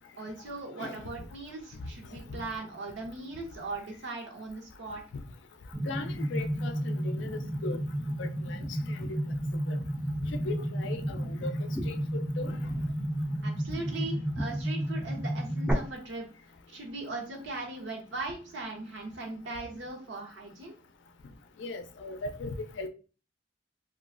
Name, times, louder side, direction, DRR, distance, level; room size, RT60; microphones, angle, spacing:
voice 1, 0.2-5.0 13.4-16.3 16.7-20.7, right 2 dB, 90° right, 0.7 m, -39 dB
sound 1, 5.7-15.7, equal, 5° right, 0.3 m, -32 dB
voice 2, 5.8-7.8 8.2-8.6 8.9-9.2 9.7-9.8 10.2-11.5 11.9-12.8 21.6-22.9, left 3 dB, 85° left, 0.4 m, -38 dB
3.0 x 2.3 x 2.4 m
head